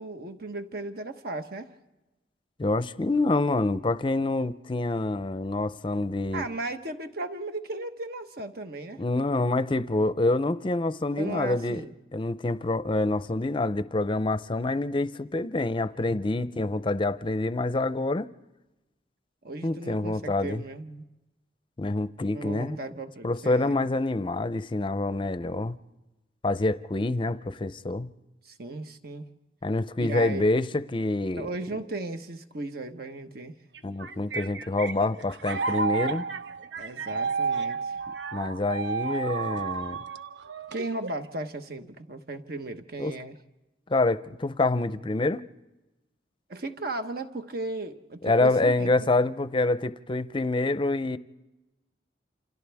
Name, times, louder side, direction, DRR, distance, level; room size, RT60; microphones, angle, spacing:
voice 1, 0.0-1.7 6.3-9.0 11.1-11.9 19.4-21.0 22.3-23.7 28.4-29.2 30.0-30.4 31.3-33.5 36.8-38.0 40.7-43.4 46.5-49.1, right 2 dB, 60° right, 1.3 m, -36 dB
voice 2, 2.6-6.4 9.0-11.8 12.1-18.3 19.6-20.6 21.8-22.8 23.2-25.8 26.4-28.1 29.6-31.5 33.8-36.2 38.3-40.0 43.0-43.1 43.9-45.4 48.2-51.2, left 2 dB, 30° left, 0.6 m, -26 dB
sound 1, 33.7-41.3, right 5 dB, 85° right, 0.8 m, -31 dB
28.5 x 27.0 x 3.5 m
head